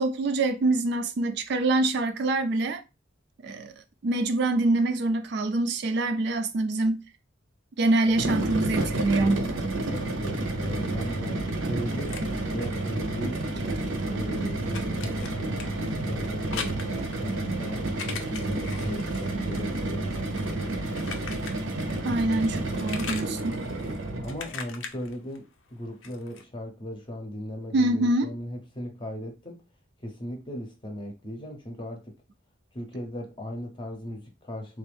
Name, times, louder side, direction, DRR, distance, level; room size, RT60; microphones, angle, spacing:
voice 1, 0.0-2.8 3.4-3.7 4.0-7.0 7.8-9.5 22.0-23.6 27.7-28.3, right 2 dB, 55° right, 0.3 m, -25 dB
sound 1, 8.1-24.5, right 2 dB, 80° right, 0.7 m, -30 dB
voice 2, 9.9-12.2 12.5-13.4 14.1-15.5 16.0-20.7 24.2-29.6 30.0-32.1 32.7-34.8, equal, 25° left, 0.7 m, -37 dB
sound 2, 11.7-13.8 14.0-22.2 22.4-26.4, left 6 dB, 70° left, 0.6 m, -41 dB
3.4 x 2.5 x 3.3 m
head